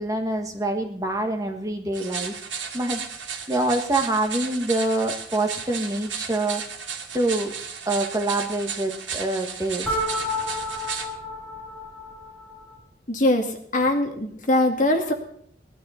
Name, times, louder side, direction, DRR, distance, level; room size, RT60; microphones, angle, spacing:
voice 1, 0.0-2.3 2.7-3.0 3.5-6.6 7.1-7.5 7.8-9.9, right 2 dB, 20° right, 3 dB, 1.6 m, -25 dB
sound 1, 1.9-11.1, right 6 dB, 85° right, 2.4 m, -34 dB
sound 2, 9.8-12.8, left 1 dB, 5° left, 7.4 m, -31 dB
voice 2, 13.1-15.1, left 1 dB, 45° left, 3 dB, 2.1 m, -22 dB
18.5 x 12.0 x 4.3 m, 0.63 s
head